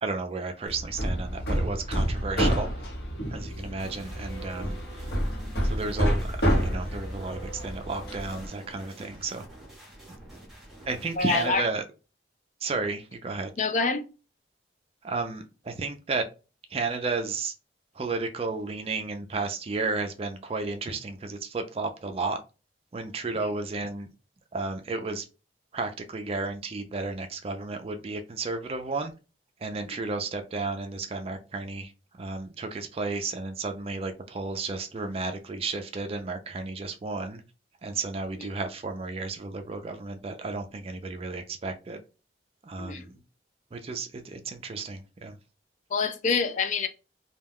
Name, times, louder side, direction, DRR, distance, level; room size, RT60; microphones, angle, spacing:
voice 1, 0.0-2.8 3.3-5.2 5.6-9.5 10.9-11.8 12.6-13.5 15.0-16.3 16.7-17.5 17.9-22.4 22.9-24.1 24.5-25.3 25.7-29.1 29.6-37.4 37.8-42.0 42.6-43.1 43.7-45.4, right 3 dB, 35° right, 0.4 m, -33 dB
Hammer, 0.7-8.5, equal, 65° left, 1.0 m, -29 dB
sound 1, 3.8-11.6, right 2 dB, ahead, 0.7 m, -47 dB
voice 2, 11.2-11.7 13.6-14.0 42.8-43.1 45.9-46.9, left 4 dB, 45° left, 0.4 m, -26 dB
2.3 x 2.2 x 3.4 m
head